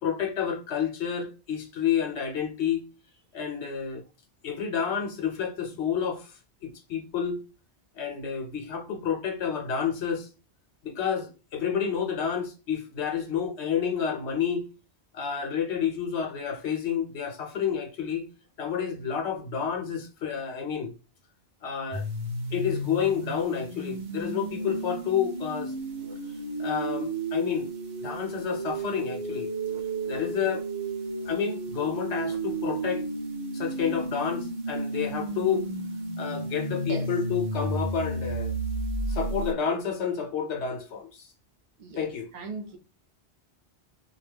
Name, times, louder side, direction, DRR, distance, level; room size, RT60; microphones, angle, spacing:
voice 1, 0.0-2.8 3.3-4.0 4.4-7.4 8.0-10.3 10.8-14.7 15.1-18.3 18.6-20.9 21.6-22.0 22.5-25.7 26.6-27.7 28.0-29.5 30.0-30.6 31.3-33.1 33.5-35.6 36.2-38.5 39.1-41.3 42.0-42.3, left 7 dB, 80° left, 1.0 m, -29 dB
sound 1, 21.9-39.5, right 2 dB, 90° right, 0.9 m, -33 dB
voice 2, 42.3-42.8, right 4 dB, 45° right, 0.7 m, -37 dB
2.4 x 2.1 x 3.3 m
omnidirectional pair, 1.1 m